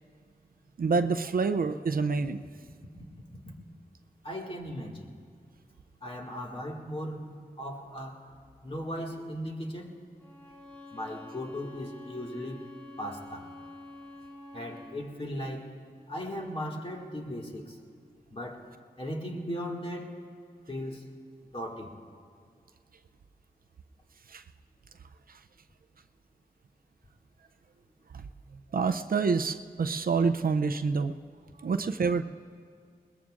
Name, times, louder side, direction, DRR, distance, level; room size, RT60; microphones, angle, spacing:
voice 1, 0.8-2.4 24.3-24.4 28.1-28.2 28.7-31.1 31.6-32.2, right 4 dB, 65° right, 9 dB, 0.5 m, -27 dB
voice 2, 4.2-5.1 6.0-7.3 7.6-8.3 8.6-10.0 10.9-12.6 13.0-13.5 14.5-15.7 16.1-17.8 18.3-18.7 19.0-20.2 20.7-21.1 21.4-22.0, equal, 35° left, -1 dB, 2.1 m, -37 dB
Bowed string instrument, 10.2-15.0, left 2 dB, 10° left, 4.0 m, -47 dB
21.5 x 20.5 x 2.5 m, 2.2 s
wide cardioid pair, 60°, 16 cm